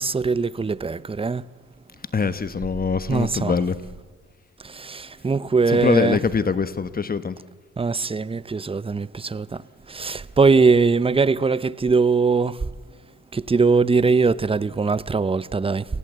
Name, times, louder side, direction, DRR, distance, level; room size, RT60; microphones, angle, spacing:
voice 1, 0.0-1.4 3.1-3.5 4.6-6.2 7.8-9.6 9.9-12.6 13.3-15.9, right 4 dB, 20° right, 0.7 m, -21 dB
voice 2, 2.1-3.8 5.7-7.4, left 5 dB, 30° left, 1.1 m, -23 dB
29.0 x 18.5 x 8.1 m
cardioid pair, 90°, 30 cm